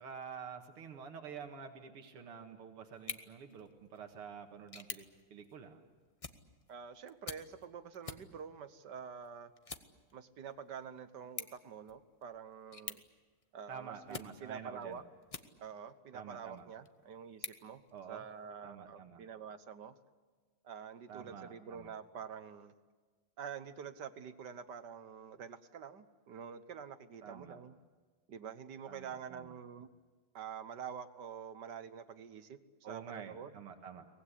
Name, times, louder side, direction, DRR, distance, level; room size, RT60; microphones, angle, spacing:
voice 1, 0.0-5.0 5.3-5.8 13.7-15.0 16.1-16.7 17.9-18.2 18.6-19.2 21.1-21.9 27.2-27.6 28.9-29.5 32.8-34.1, right 7 dB, 80° right, 5 dB, 2.6 m, -48 dB
sound 1, 2.9-15.9 16.4-18.5, left 3 dB, 55° left, 0.4 m, -51 dB
voice 2, 6.7-9.5 10.1-13.0 13.5-15.0 15.6-17.8 18.1-20.0 20.6-22.7 23.4-27.8 28.3-29.9 30.3-33.5, right 7 dB, 55° right, 11 dB, 1.5 m, -47 dB
23.5 x 19.0 x 10.0 m, 1.4 s
omnidirectional pair, 2.4 m